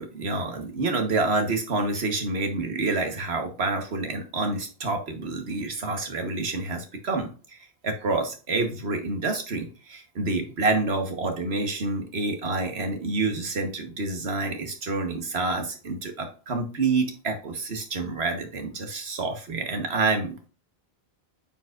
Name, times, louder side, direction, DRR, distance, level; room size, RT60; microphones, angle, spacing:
voice 1, 0.0-7.6 7.8-20.5, right 3 dB, 75° right, 5 dB, 1.6 m, -28 dB
8.8 x 4.7 x 2.5 m, 0.37 s
omnidirectional pair, 1.1 m